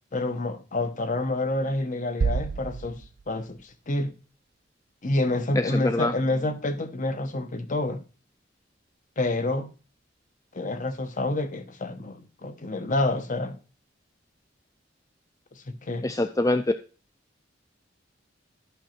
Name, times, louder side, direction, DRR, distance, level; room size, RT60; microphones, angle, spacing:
voice 1, 0.1-4.1 5.0-8.0 9.2-9.7 10.5-13.6 15.7-16.1, left 2 dB, 45° left, 1.1 m, -28 dB
sound 1, 2.2-4.0, right 5 dB, 45° right, 0.3 m, -30 dB
voice 2, 5.5-6.1 16.0-16.6, left 2 dB, 20° left, 0.5 m, -24 dB
12.0 x 5.6 x 4.4 m
head